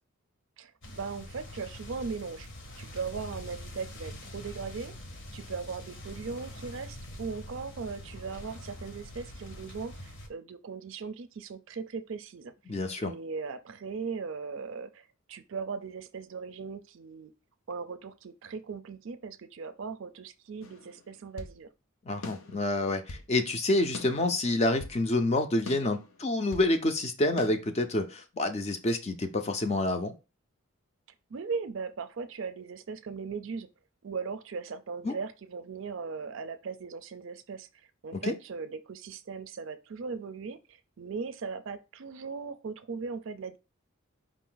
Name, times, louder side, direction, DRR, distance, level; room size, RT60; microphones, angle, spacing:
voice 1, 0.6-2.5 2.8-5.0 5.3-12.5 13.0-17.3 17.7-21.7 31.3-33.7 34.0-37.7 38.0-43.6, right 5 dB, 65° right, 0.4 m, -38 dB
sound 1, 0.8-10.3, equal, 60° left, 0.9 m, -44 dB
voice 2, 12.7-13.1 22.1-30.1 35.0-35.1 38.2-38.3, left 2 dB, 30° left, 0.5 m, -28 dB
sound 2, 20.6-21.6 22.2-23.3 23.9-25.0 25.7-26.7 27.4-27.5, left 3 dB, 80° left, 0.7 m, -43 dB
4.9 x 2.6 x 3.8 m
head